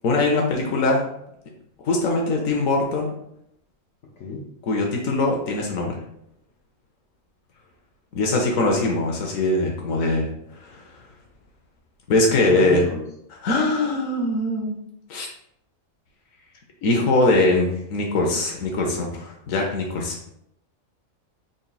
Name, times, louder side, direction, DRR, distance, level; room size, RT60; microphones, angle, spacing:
voice 1, 0.0-1.0 1.8-3.1 4.7-6.0 8.1-10.3 10.6-10.9 12.1-12.8 13.4-14.8 15.1-15.3 16.8-20.1, left 2 dB, 85° left, 0 dB, 1.1 m, -22 dB
voice 2, 4.0-4.5 8.5-8.6 12.3-13.1, left 3 dB, 65° left, -3 dB, 0.9 m, -32 dB
4.1 x 3.9 x 2.2 m, 0.76 s
omnidirectional pair, 1.4 m